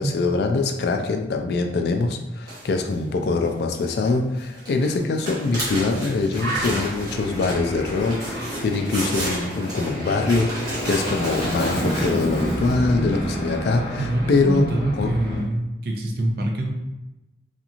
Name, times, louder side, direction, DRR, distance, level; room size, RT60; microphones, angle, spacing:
voice 1, 0.0-14.6 15.0-15.1, left 3 dB, 65° left, 5 dB, 0.3 m, -23 dB
sound 1, 2.5-3.0 3.8-4.1 4.4-12.1, right 1 dB, 20° right, 0.9 m, -32 dB
Bird, 5.5-5.7 6.0-6.1 6.4-9.5 9.8-11.5 11.8-12.1, right 2 dB, 85° right, 1.1 m, -36 dB
Aircraft, 6.6-15.4, equal, 25° left, 0.7 m, -30 dB
voice 2, 14.0-16.7, right 1 dB, 55° right, 1 dB, 0.4 m, -25 dB
2.9 x 2.5 x 2.4 m, 0.96 s
head